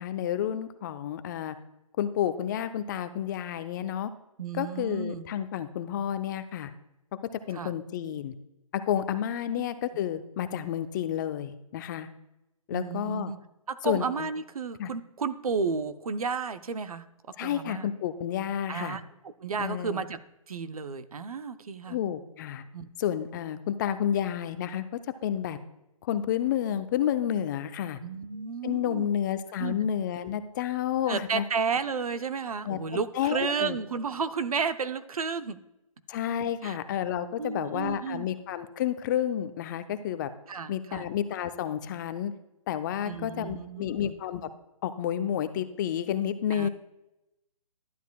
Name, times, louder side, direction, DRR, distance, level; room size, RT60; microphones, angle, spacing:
voice 1, 0.0-1.6 2.0-4.1 4.5-6.7 7.5-8.3 8.7-12.1 12.7-13.3 13.8-14.3 14.8-14.9 17.4-19.0 19.6-20.0 21.9-22.6 23.0-24.8 25.2-25.6 26.0-28.0 28.6-31.4 32.6-32.8 33.1-33.8 36.1-40.3 40.7-42.3 42.7-44.5 44.8-46.7, left 10 dB, 35° left, 11 dB, 0.5 m, -30 dB
voice 2, 4.4-5.3 7.5-7.7 9.5-9.6 12.7-13.4 13.7-17.1 17.4-17.9 18.7-19.0 19.4-20.2 20.5-22.0 22.7-22.9 28.0-29.1 29.6-29.8 31.1-35.6 36.6-36.8 37.4-38.3 40.5-41.1 43.0-44.1 46.5-46.7, right 5 dB, 85° right, 12 dB, 0.6 m, -32 dB
12.0 x 8.1 x 2.3 m, 0.91 s
hypercardioid pair, 140°, 18 cm